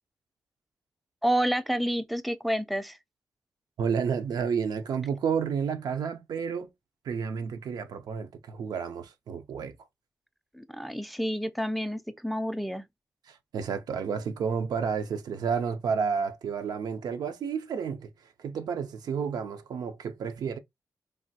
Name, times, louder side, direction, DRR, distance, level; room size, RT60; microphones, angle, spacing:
voice 1, 1.2-3.0 10.5-12.9, equal, ahead, 0.3 m, -29 dB
voice 2, 3.8-6.7 7.1-9.7 13.3-18.1 18.4-20.6, right 6 dB, 85° right, 0.4 m, -31 dB
3.2 x 2.2 x 2.6 m
cardioid pair, 75°, 7 cm